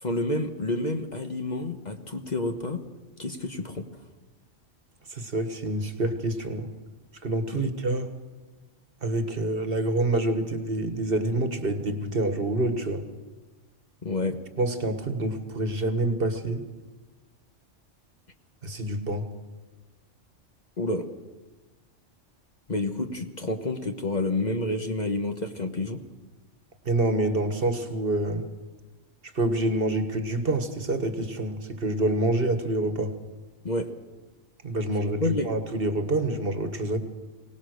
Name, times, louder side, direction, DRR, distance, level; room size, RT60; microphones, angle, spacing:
voice 1, 0.0-2.8 3.2-3.9 7.5-7.7 14.0-14.4 20.8-21.1 22.7-26.0 33.6-33.9 35.2-35.5, left 2 dB, 35° left, 5 dB, 1.2 m, -29 dB
voice 2, 5.1-6.7 7.2-8.1 9.0-13.0 14.6-16.6 18.6-19.3 26.8-28.4 29.3-33.2 34.6-37.0, right 2 dB, 50° right, 8 dB, 1.7 m, -27 dB
23.5 x 18.5 x 6.5 m, 1.2 s
omnidirectional pair, 1.3 m